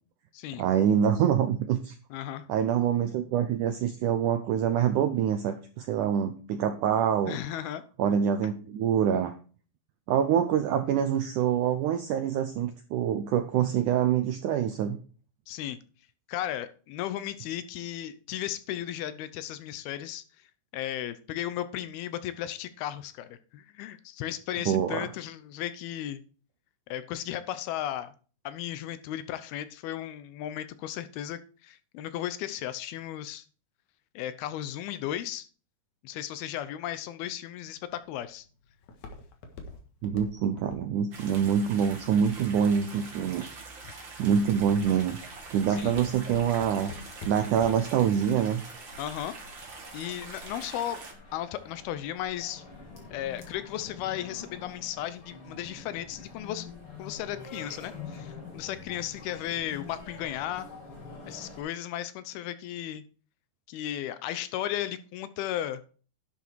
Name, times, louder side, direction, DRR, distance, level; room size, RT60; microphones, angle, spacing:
voice 1, 0.6-2.0 2.5-7.4 8.0-9.3 10.1-15.0 24.7-25.1 40.0-43.5 44.2-45.2 45.5-46.9 47.3-48.6, right 8 dB, 80° right, 8 dB, 1.8 m, -25 dB
voice 2, 2.1-2.5 7.3-7.8 15.5-15.8 16.3-20.2 20.7-26.2 26.9-28.1 28.4-33.4 34.2-35.5 36.0-38.5 43.8-43.9 45.7-46.0 49.0-49.4 49.9-51.0 51.3-52.6 53.1-56.7 57.0-60.7 61.3-63.0 63.7-65.8, left 12 dB, 80° left, 13 dB, 2.6 m, -35 dB
Walk footsteps, 37.7-42.9 43.5-43.9 44.4-44.8 45.1-48.0 48.4-48.5, left 3 dB, 55° left, 2.5 m, -43 dB
sound 1, 41.1-51.1, right 3 dB, 35° right, 2.4 m, -44 dB
sound 2, 44.3-61.6, left 4 dB, 35° left, 3.3 m, -47 dB
11.5 x 6.8 x 4.6 m, 0.38 s
omnidirectional pair, 4.6 m